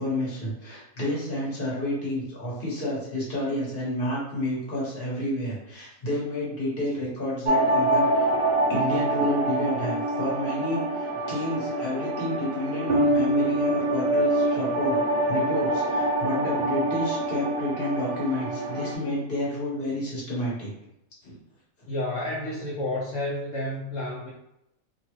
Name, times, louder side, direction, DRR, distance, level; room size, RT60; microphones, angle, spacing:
voice 1, 0.0-8.3 8.7-15.0 15.3-20.7 21.2-21.3, left 1 dB, 40° left, -6 dB, 1.3 m, -30 dB
sound 1, 7.4-18.9, right 1 dB, 90° right, 0.4 m, -25 dB
voice 2, 21.9-24.3, left 1 dB, 70° left, -5 dB, 0.9 m, -30 dB
2.9 x 2.3 x 3.0 m, 0.84 s
omnidirectional pair, 1.5 m